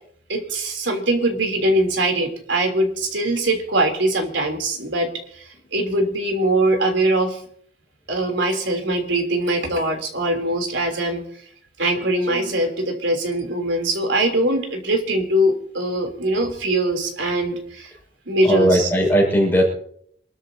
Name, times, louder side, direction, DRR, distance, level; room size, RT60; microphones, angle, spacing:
voice 1, 0.3-7.4 8.1-11.3 11.8-17.9 18.2-18.9, right 1 dB, 90° right, 3 dB, 3.5 m, -22 dB
voice 2, 18.4-19.7, equal, 10° left, -3 dB, 6.3 m, -17 dB
27.5 x 13.0 x 2.9 m, 0.65 s
head